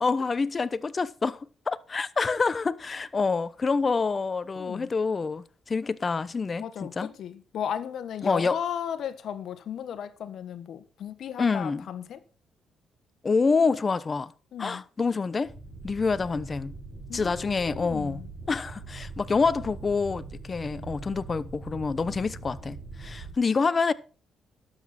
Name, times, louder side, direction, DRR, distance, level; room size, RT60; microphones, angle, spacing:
voice 1, 0.0-7.1 8.2-8.6 11.4-11.8 13.2-14.3 14.6-15.5 15.8-16.7 17.1-18.2 18.5-23.9, left 4 dB, 35° left, 0.8 m, -27 dB
voice 2, 4.5-4.9 6.6-12.2 14.5-14.8 17.1-18.3, left 9 dB, 70° left, 1.3 m, -35 dB
sound 1, 15.4-23.3, right 3 dB, 55° right, 5.8 m, -42 dB
12.5 x 8.2 x 4.3 m
cardioid pair, 90°, 0 cm